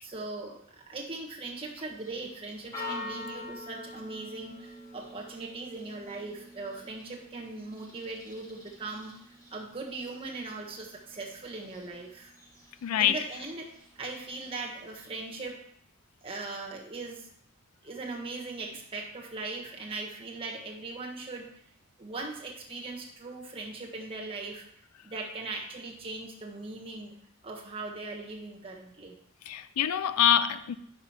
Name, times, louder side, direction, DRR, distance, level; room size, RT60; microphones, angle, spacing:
voice 1, 0.0-9.2 9.5-12.3 13.0-15.6 16.2-17.3 17.8-21.5 22.0-24.6 25.0-27.1 27.4-29.1, right 3 dB, 25° right, 1.3 m, -39 dB
Church bell, 1.7-15.5, left 2 dB, 15° left, 1.3 m, -47 dB
voice 2, 12.8-13.3 29.5-30.7, left 10 dB, 80° left, 0.4 m, -25 dB
5.4 x 4.9 x 5.7 m
head